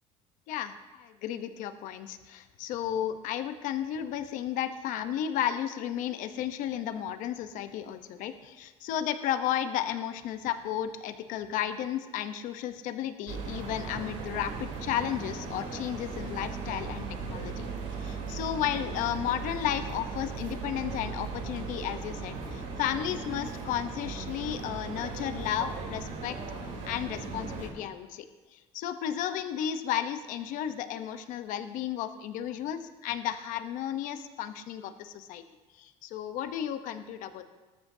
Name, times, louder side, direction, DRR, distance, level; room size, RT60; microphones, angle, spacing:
voice 1, 0.5-17.7 18.0-26.3 26.8-28.2 28.5-35.4 35.8-37.5, left 10 dB, 75° left, 9 dB, 0.9 m, -33 dB
sound 1, 13.3-27.7, right 4 dB, 80° right, 3.5 m, -38 dB
19.5 x 13.0 x 2.7 m, 1.3 s
cardioid pair, 115°, 14 cm